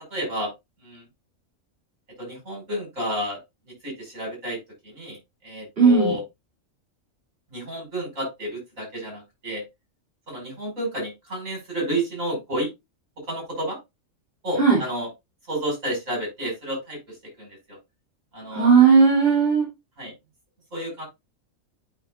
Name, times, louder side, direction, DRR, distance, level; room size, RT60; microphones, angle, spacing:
voice 1, 0.1-0.5 0.8-1.0 2.2-3.4 3.8-5.2 5.4-6.2 7.5-9.6 10.3-12.7 13.3-13.8 14.4-15.1 15.5-17.8 18.3-18.7 20.0-20.1 20.7-21.0, equal, 75° right, 1 dB, 5.9 m, -30 dB
voice 2, 5.8-6.1 14.6-14.8 18.5-19.7, right 5 dB, 45° right, -4 dB, 3.5 m, -16 dB
8.9 x 5.9 x 2.5 m, 0.20 s
omnidirectional pair, 1.4 m